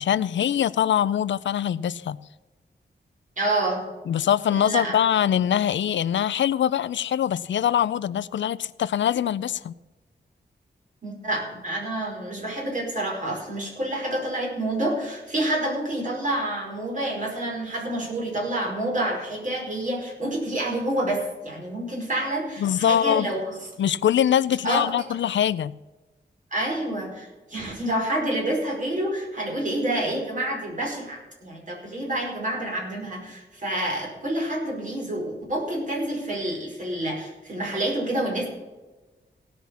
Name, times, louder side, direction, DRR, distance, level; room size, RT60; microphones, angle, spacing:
voice 1, 0.0-2.2 4.1-9.7 22.6-23.3 23.8-25.7, left 10 dB, 85° left, 18 dB, 0.5 m, -23 dB
voice 2, 3.4-3.8 4.5-5.0 11.0-23.5 24.6-24.8 26.5-38.5, right 1 dB, 45° right, -2 dB, 5.0 m, -28 dB
17.5 x 5.9 x 7.1 m, 1.1 s
wide cardioid pair, 140°, 19 cm